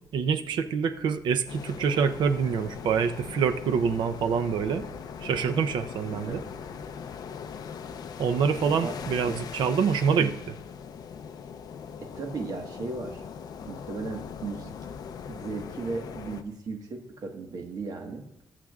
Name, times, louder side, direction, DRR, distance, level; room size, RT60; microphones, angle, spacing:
voice 1, 0.1-4.8 5.2-6.4 8.2-10.3, right 6 dB, 90° right, 9 dB, 0.6 m, -26 dB
sound 1, 1.5-16.4, left 7 dB, 60° left, 0.6 m, -40 dB
voice 2, 6.1-6.4 8.6-8.9 9.3-9.4 10.2-10.3 12.1-13.2 13.7-14.7 15.3-18.4, right 4 dB, 55° right, 3 dB, 1.5 m, -36 dB
21.0 x 7.4 x 2.4 m, 0.92 s
wide cardioid pair, 170°, 8 cm